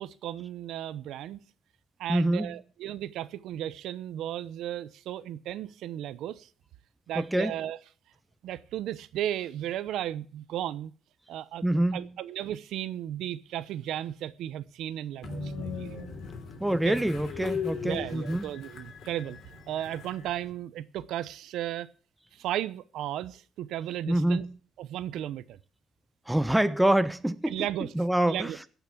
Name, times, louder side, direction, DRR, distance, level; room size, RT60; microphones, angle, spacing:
voice 1, 0.0-1.4 2.0-6.5 7.1-7.8 8.4-10.9 11.3-11.6 11.9-16.1 16.8-16.9 17.8-19.4 19.7-21.9 22.3-24.4 24.8-25.6 27.5-27.9 28.2-28.6, right 12 dB, 85° right, 0.8 m, -35 dB
voice 2, 2.1-2.5 7.1-7.5 11.6-12.1 16.6-18.4 24.1-24.5 26.3-27.7 27.9-28.5, right 1 dB, 5° right, 1.0 m, -26 dB
Train, 15.2-20.5, left 5 dB, 65° left, 3.5 m, -38 dB
16.0 x 6.1 x 8.4 m
cardioid pair, 90°, 0 cm